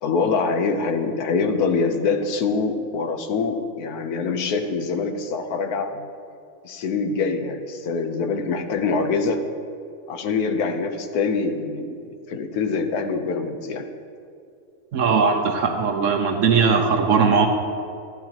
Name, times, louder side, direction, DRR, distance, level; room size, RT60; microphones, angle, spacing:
voice 1, 0.0-6.1 6.6-9.4 10.1-12.0 12.3-13.9, left 4 dB, 75° left, 6 dB, 1.3 m, -24 dB
voice 2, 14.9-17.5, right 5 dB, 60° right, 3 dB, 1.0 m, -19 dB
14.5 x 10.5 x 2.9 m, 2.5 s
omnidirectional pair, 1.6 m